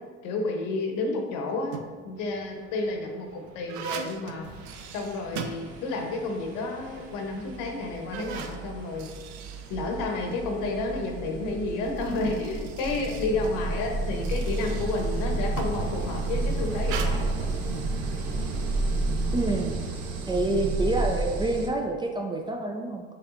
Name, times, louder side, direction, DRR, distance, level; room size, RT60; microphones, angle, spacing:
voice 1, 0.2-1.8 2.0-4.5 4.9-9.1 9.7-17.5, left 3 dB, 65° left, 2 dB, 0.9 m, -31 dB
sound 1, 1.5-2.1 2.8-6.2 6.5-6.6 7.3-7.4 7.9-10.5 11.7-15.9 16.8-17.1, right 7 dB, 80° right, 0.5 m, -40 dB
sound 2, 3.9-4.1 4.4-21.7, right 2 dB, 50° right, 0.8 m, -32 dB
voice 2, 19.3-19.8 20.3-23.0, right 2 dB, 15° right, 2 dB, 0.3 m, -27 dB
5.9 x 3.3 x 2.5 m, 1.5 s
hypercardioid pair, 75°, 34 cm